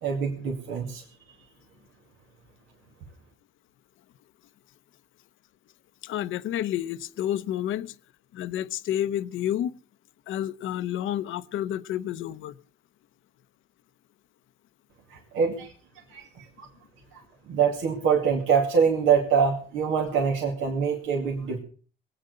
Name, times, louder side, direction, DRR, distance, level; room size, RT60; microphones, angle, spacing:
voice 1, 0.0-1.0 15.1-15.7 16.1-16.7 17.1-21.6, right 6 dB, 90° right, 2.4 m, -25 dB
voice 2, 6.0-8.0 8.3-9.7 10.3-12.5, left 11 dB, 80° left, 0.8 m, -30 dB
20.0 x 8.9 x 6.6 m
cardioid pair, 90°, 20 cm